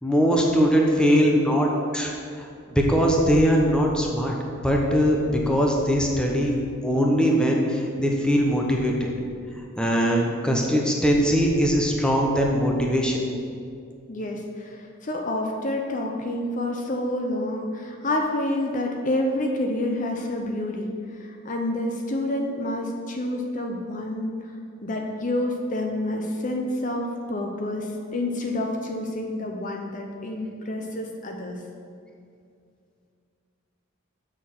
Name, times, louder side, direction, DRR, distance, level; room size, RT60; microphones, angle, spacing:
voice 1, 0.0-1.7 1.9-2.1 2.4-4.4 4.6-6.5 6.8-9.1 9.8-13.2, equal, 5° left, 0 dB, 0.9 m, -21 dB
voice 2, 14.1-20.9 21.2-24.5 24.8-31.6, left 1 dB, 35° left, 2 dB, 0.7 m, -28 dB
7.4 x 6.4 x 6.0 m, 2.4 s
head